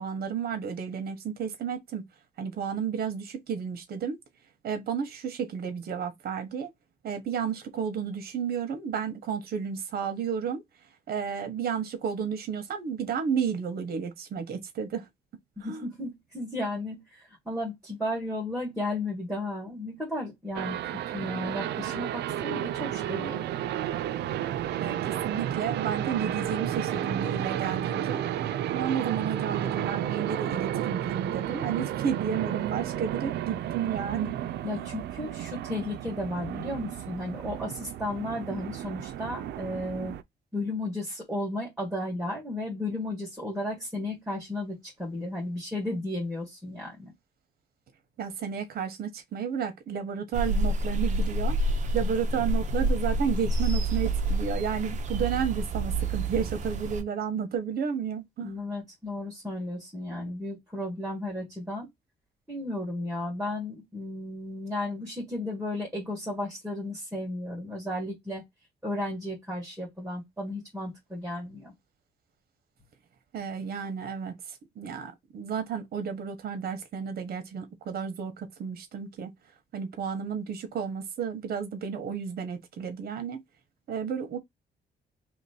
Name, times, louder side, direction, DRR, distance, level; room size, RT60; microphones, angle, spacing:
voice 1, 0.0-2.0 2.4-4.2 4.6-6.7 7.0-10.6 11.1-15.1 15.6-15.9 24.8-28.2 28.7-34.3 34.8-34.9 48.2-58.5 73.3-79.3 79.7-83.4 83.9-84.4, right 7 dB, 65° right, 1.1 m, -32 dB
voice 2, 15.6-23.4 34.6-40.1 40.5-47.1 58.4-61.9 62.5-68.4 68.8-71.7, left 1 dB, 5° right, 1.7 m, -34 dB
sound 1, 20.5-40.2, right 11 dB, 85° right, 0.4 m, -32 dB
sound 2, 50.3-57.0, right 1 dB, 45° right, 0.7 m, -28 dB
3.1 x 2.9 x 4.2 m
cardioid pair, 145°, 17 cm